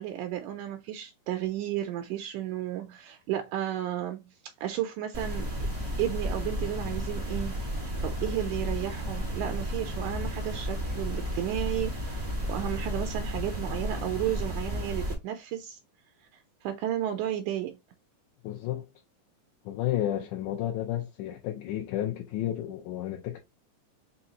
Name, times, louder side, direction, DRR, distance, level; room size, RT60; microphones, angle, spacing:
voice 1, 0.0-4.3 4.6-5.5 6.0-15.8 16.6-17.8, right 12 dB, 80° right, 2.0 m, -33 dB
sound 1, 5.1-15.1, equal, 25° right, 0.7 m, -33 dB
voice 2, 18.4-18.9 19.7-23.4, left 12 dB, 80° left, 2.0 m, -32 dB
5.5 x 2.7 x 2.9 m
omnidirectional pair, 3.8 m